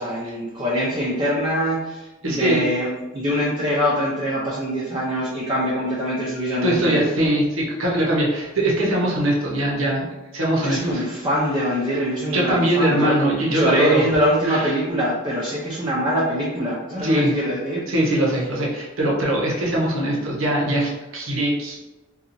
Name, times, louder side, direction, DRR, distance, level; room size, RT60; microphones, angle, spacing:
voice 1, 0.0-2.9 3.1-7.3 10.6-17.9, equal, 20° right, -6 dB, 0.5 m, -23 dB
voice 2, 2.2-2.6 6.6-10.0 10.3-11.0 12.3-14.0 14.5-14.7 17.0-17.3 17.9-21.8, right 1 dB, 85° right, -3 dB, 0.8 m, -21 dB
2.8 x 2.3 x 2.6 m, 1.1 s
head